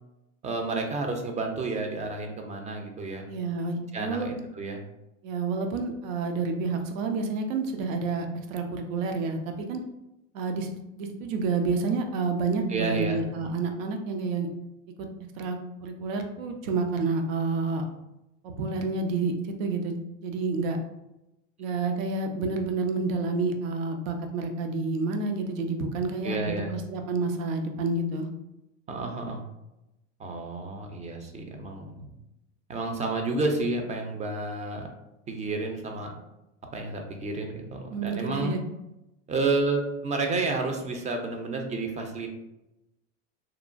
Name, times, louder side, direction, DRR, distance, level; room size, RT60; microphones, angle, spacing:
voice 1, 0.4-3.3 3.9-4.8 12.7-13.2 26.2-26.8 28.9-29.4 30.2-32.1 32.7-34.9 35.3-36.1 36.7-38.6 39.3-42.3, right 3 dB, 20° right, 4 dB, 0.3 m, -30 dB
voice 2, 3.3-4.3 5.2-9.8 10.3-14.5 15.0-15.1 15.4-17.8 18.4-19.3 19.6-20.0 20.2-20.8 21.6-28.3 37.9-38.6, right 3 dB, 80° right, 5 dB, 0.6 m, -29 dB
3.0 x 2.1 x 2.4 m, 0.92 s
hypercardioid pair, 95°, 39 cm